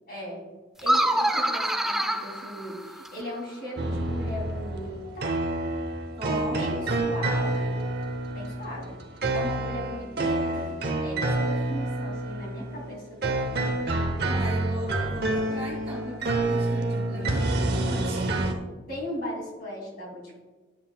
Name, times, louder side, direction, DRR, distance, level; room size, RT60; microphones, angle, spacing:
voice 1, 0.1-0.4 0.8-5.4 6.5-7.8 8.3-9.0 9.3-14.4 16.9-17.4 18.9-20.4, left 1 dB, 50° left, -3 dB, 2.5 m, -38 dB
sound 1, 0.8-3.3, right 1 dB, ahead, 0.4 m, -26 dB
sound 2, 3.8-18.5, right 2 dB, 55° right, 0.8 m, -28 dB
voice 2, 6.1-6.6 14.2-18.6, equal, 30° right, -4 dB, 2.5 m, -37 dB
10.5 x 7.3 x 2.2 m, 1.3 s
head